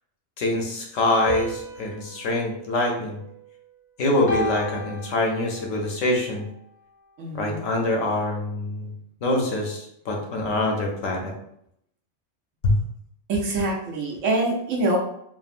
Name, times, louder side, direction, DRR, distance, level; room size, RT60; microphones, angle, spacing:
voice 1, 0.4-3.2 4.0-6.5 7.3-8.9 9.2-11.3 12.6-12.7, left 2 dB, 90° left, 1 dB, 1.0 m, -24 dB
sound 1, 1.3-3.7 4.3-5.8, equal, 65° left, 1.1 m, -34 dB
voice 2, 7.2-7.6 13.3-15.0, right 2 dB, 90° right, -1 dB, 1.1 m, -25 dB
3.4 x 2.0 x 2.4 m, 0.73 s
omnidirectional pair, 1.3 m